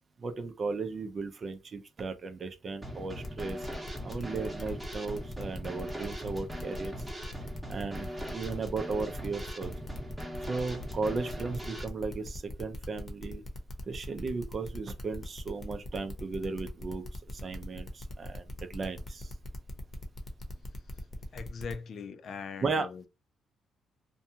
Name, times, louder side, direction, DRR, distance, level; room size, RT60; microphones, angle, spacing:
voice 1, 0.2-3.7 4.0-7.1 7.7-9.7 10.5-13.4 13.9-19.3 22.6-22.9, right 4 dB, 40° right, 0.5 m, -36 dB
Drum kit / Snare drum, 2.8-11.9, equal, 10° right, 0.9 m, -41 dB
sound 1, 3.2-21.7, left 2 dB, 35° left, 0.8 m, -43 dB
voice 2, 21.3-23.1, left 5 dB, 60° left, 0.4 m, -40 dB
2.6 x 2.2 x 2.7 m
cardioid pair, 90°, 0 cm